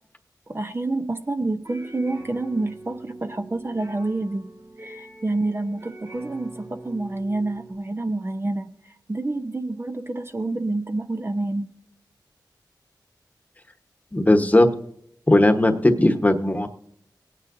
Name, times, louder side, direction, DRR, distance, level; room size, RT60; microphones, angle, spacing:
voice 1, 0.5-4.5 4.8-11.7, right 2 dB, 35° right, 7 dB, 0.8 m, -28 dB
Atmospheric Ambient Fake Guitar Piece, 1.4-7.7, right 1 dB, 55° right, 5.8 m, -44 dB
voice 2, 14.1-14.7 15.3-16.7, left 1 dB, 20° left, 6 dB, 1.1 m, -17 dB
19.0 x 9.4 x 2.7 m, 0.72 s
wide cardioid pair, 65°, 8 cm